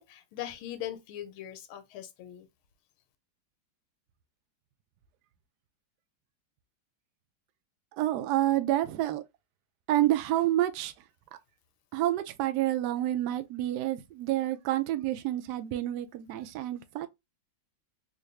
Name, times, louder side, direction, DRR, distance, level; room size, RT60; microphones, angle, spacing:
voice 1, 0.0-2.5, left 12 dB, 85° left, 1.5 m, -40 dB
voice 2, 7.9-9.2 9.9-10.9 11.9-17.1, right 14 dB, 80° right, 0.9 m, -28 dB
3.8 x 2.4 x 3.2 m
omnidirectional pair, 2.2 m